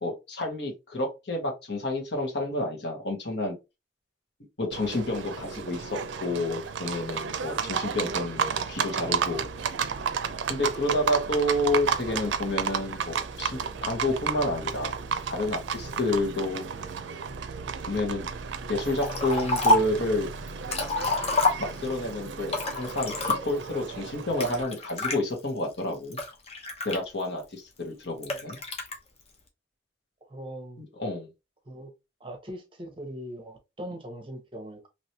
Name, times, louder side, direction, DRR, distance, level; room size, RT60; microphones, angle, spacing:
voice 1, 0.0-3.6 4.6-9.5 10.5-15.0 15.3-16.9 17.9-18.3 18.7-20.3 21.6-26.2 26.8-28.6 31.0-31.3, left 1 dB, 70° left, 1.4 m, -29 dB
Livestock farm animals working animals, 4.7-24.6, right 6 dB, 85° right, 0.4 m, -33 dB
Liquid, 19.0-20.0 20.5-22.0 22.5-23.7 24.4-25.2 25.8-27.4 28.2-28.9, left 2 dB, 35° left, 0.9 m, -27 dB
voice 2, 30.2-30.8 31.7-31.9 32.2-34.9, equal, 30° right, 0.8 m, -40 dB
3.1 x 3.0 x 2.7 m
head